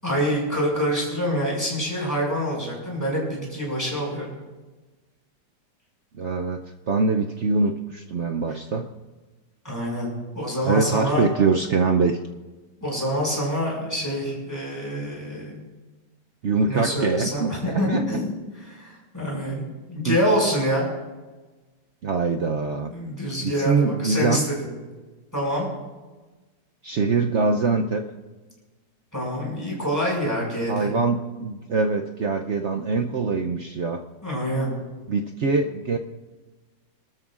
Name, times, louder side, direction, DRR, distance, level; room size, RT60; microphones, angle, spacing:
voice 1, 0.0-4.4 9.6-11.3 12.8-15.6 16.7-20.8 22.9-24.7 25.3-25.7 29.1-30.9 34.2-34.7, equal, 10° left, -4 dB, 6.0 m, -26 dB
voice 2, 6.1-6.6 6.9-8.9 10.7-12.2 16.4-18.0 20.0-20.2 22.0-22.9 23.4-24.4 26.8-28.0 30.7-34.0 35.1-36.0, right 4 dB, 70° right, 4 dB, 0.6 m, -23 dB
26.5 x 13.0 x 2.5 m, 1.2 s
omnidirectional pair, 2.0 m